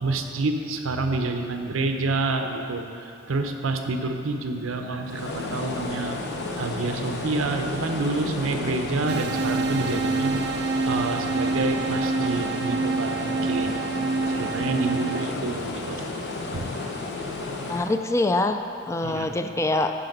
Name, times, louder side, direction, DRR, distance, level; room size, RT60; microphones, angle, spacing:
voice 1, 0.0-6.2 6.6-10.4 10.9-13.8 14.3-16.0 16.5-16.7 19.0-19.3, right 3 dB, 85° right, 5 dB, 0.7 m, -28 dB
sound 1, 5.0-18.0, left 3 dB, 55° left, 0.9 m, -32 dB
sound 2, 9.1-15.3, right 4 dB, 55° right, 0.4 m, -27 dB
voice 2, 17.7-19.9, left 2 dB, 15° left, 7 dB, 0.3 m, -24 dB
10.0 x 5.7 x 5.3 m, 2.6 s
head